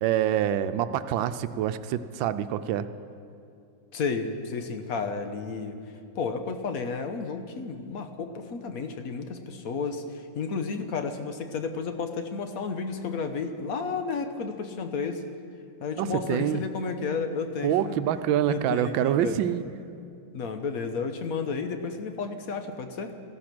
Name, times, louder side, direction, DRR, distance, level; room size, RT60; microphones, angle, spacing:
voice 1, 0.0-2.8 16.0-16.6 17.6-19.6, right 10 dB, 90° right, 12 dB, 1.4 m, -26 dB
voice 2, 3.9-5.8 6.1-15.2 15.8-17.9 18.5-19.4 20.3-23.1, left 5 dB, 55° left, 7 dB, 1.2 m, -32 dB
14.0 x 13.5 x 6.0 m, 2.5 s
omnidirectional pair, 2.0 m